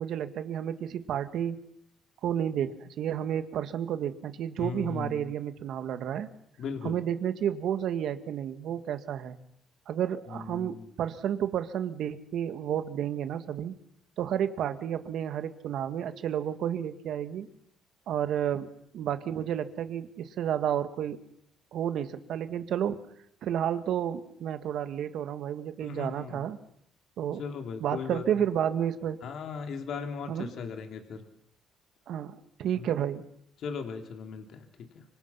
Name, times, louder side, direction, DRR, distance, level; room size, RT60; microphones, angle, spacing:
voice 1, 0.0-1.6 2.2-6.3 6.8-9.4 9.9-13.7 14.2-17.5 18.1-18.7 18.9-21.2 21.7-23.0 23.4-26.6 27.2-27.4 27.8-29.2 30.3-30.5 32.1-33.3, right 9 dB, 65° right, 10 dB, 1.9 m, -31 dB
voice 2, 4.6-5.3 6.6-7.0 10.3-10.9 25.8-26.4 27.4-28.2 29.2-31.3 32.7-32.9 33.6-34.7 34.9-35.0, left 5 dB, 60° left, 5 dB, 3.2 m, -37 dB
25.5 x 25.5 x 5.9 m, 0.73 s
cardioid pair, 105°, 0 cm